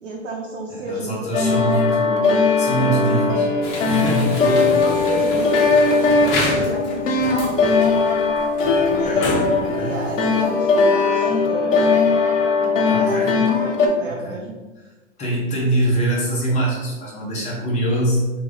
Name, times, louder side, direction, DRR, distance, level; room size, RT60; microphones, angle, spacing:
voice 1, 0.0-1.2 3.9-4.3 4.6-7.7 9.0-9.3 9.8-11.9 12.6-14.6, right 1 dB, 75° right, -3 dB, 0.9 m, -31 dB
voice 2, 0.7-4.6 8.8-9.3 9.6-10.0 12.9-13.4 14.0-14.4 15.2-18.3, right 1 dB, 20° left, -4 dB, 1.2 m, -24 dB
sound 1, 1.3-13.9, left 4 dB, 90° left, 0.9 m, -19 dB
sound 2, 3.6-10.8, left 2 dB, 45° left, 1.2 m, -29 dB
3.5 x 3.1 x 3.9 m, 1.2 s
hypercardioid pair, 120°, 38 cm